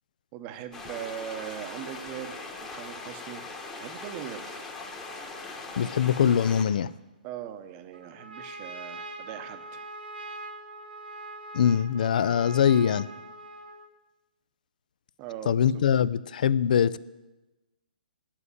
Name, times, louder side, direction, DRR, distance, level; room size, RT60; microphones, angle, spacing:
voice 1, 0.3-2.3 2.6-3.4 3.8-4.6 7.2-9.8 15.2-15.9, right 10 dB, 25° right, 9 dB, 0.8 m, -40 dB
sound 1, 0.7-6.6, left 3 dB, 10° left, 1.2 m, -40 dB
voice 2, 5.8-6.9 11.5-13.1 15.5-17.0, left 8 dB, 55° left, 18 dB, 0.4 m, -23 dB
Trumpet, 7.9-13.9, right 2 dB, 85° right, 1.8 m, -42 dB
9.6 x 7.4 x 8.3 m, 1.1 s
hypercardioid pair, 155°, 5 cm